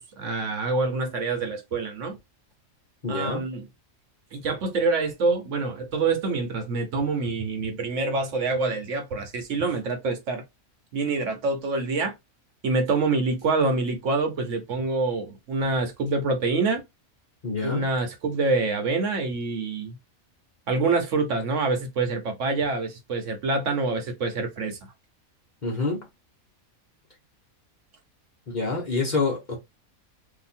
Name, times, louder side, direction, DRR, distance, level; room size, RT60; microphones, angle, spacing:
voice 1, 0.2-2.2 3.1-3.6 4.3-10.4 10.9-12.1 12.6-16.8 17.6-19.9 20.7-24.8, right 3 dB, 65° right, 1.1 m, -26 dB
voice 2, 3.0-3.5 17.4-17.8 25.6-26.1 28.5-29.6, left 3 dB, 35° left, 0.9 m, -27 dB
2.8 x 2.4 x 4.2 m
omnidirectional pair, 1.5 m